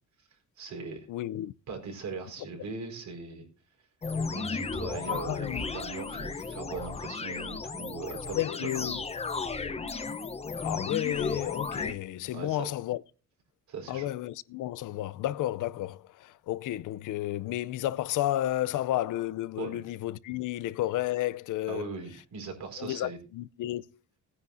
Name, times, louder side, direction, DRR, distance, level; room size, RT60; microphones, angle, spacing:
voice 1, 0.6-1.1 1.7-3.4 4.3-9.0 12.3-12.7 13.7-14.1 19.6-19.8 21.7-23.2, right 4 dB, 65° right, 4.6 m, -40 dB
voice 2, 1.1-1.5 5.1-5.6 8.3-9.0 10.6-13.0 13.9-21.9 22.8-23.8, left 14 dB, 80° left, 0.6 m, -32 dB
sound 1, 4.0-11.9, left 4 dB, 20° left, 0.8 m, -34 dB
18.5 x 9.8 x 2.6 m
cardioid pair, 155°, 31 cm